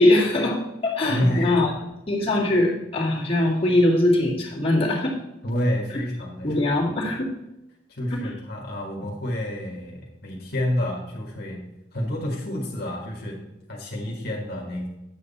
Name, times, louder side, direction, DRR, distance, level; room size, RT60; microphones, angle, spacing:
voice 1, 0.0-1.7 2.1-5.2 6.4-7.3 8.1-8.3, left 1 dB, 35° left, -4 dB, 2.1 m, -21 dB
voice 2, 1.1-1.6 5.4-6.9 7.9-11.6 11.9-13.4 13.7-14.9, left 1 dB, 60° left, -1 dB, 1.7 m, -29 dB
9.5 x 7.7 x 4.2 m, 0.94 s
head